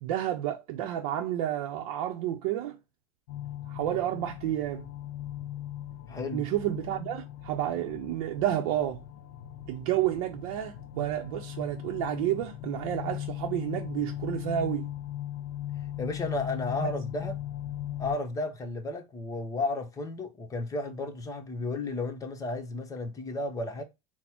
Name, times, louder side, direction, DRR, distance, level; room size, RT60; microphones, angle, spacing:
voice 1, 0.0-2.7 3.7-4.9 6.3-9.0 9.7-14.9 16.8-16.9, right 12 dB, 75° right, 0.6 m, -30 dB
sound 1, 3.3-18.2, left 12 dB, 85° left, 0.5 m, -39 dB
voice 2, 6.1-6.5 16.0-17.4 18.0-23.8, left 2 dB, 20° left, 0.9 m, -33 dB
4.2 x 2.1 x 4.2 m
supercardioid pair, 140°, 18 cm